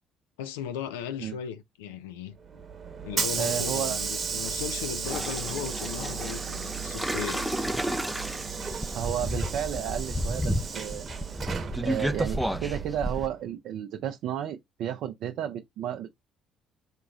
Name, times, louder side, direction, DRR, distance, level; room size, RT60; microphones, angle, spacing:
voice 1, 0.4-2.4 3.0-7.5, left 8 dB, 75° left, 0.3 m, -37 dB
Hiss / Sliding door, 2.4-13.3, right 6 dB, 40° right, 1.0 m, -34 dB
voice 2, 3.4-4.0 4.3-4.4 8.9-11.1 11.8-16.1, right 10 dB, 60° right, 0.4 m, -32 dB
sound 1, 5.0-13.3, equal, ahead, 0.4 m, -32 dB
3.8 x 3.6 x 2.3 m
hypercardioid pair, 50°, 0 cm